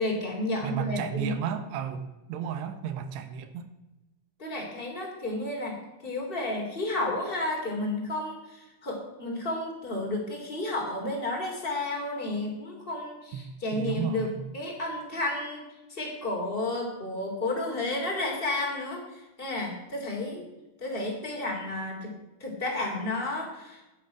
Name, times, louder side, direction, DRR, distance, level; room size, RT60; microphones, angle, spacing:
voice 1, 0.0-1.3 4.4-15.6 15.9-20.5 20.8-22.1 22.4-23.8, left 2 dB, 15° left, 0 dB, 2.5 m, -32 dB
voice 2, 0.6-3.7 13.3-13.4 13.7-14.4, right 8 dB, 90° right, 9 dB, 3.2 m, -33 dB
10.5 x 9.4 x 5.8 m, 1.0 s
omnidirectional pair, 4.8 m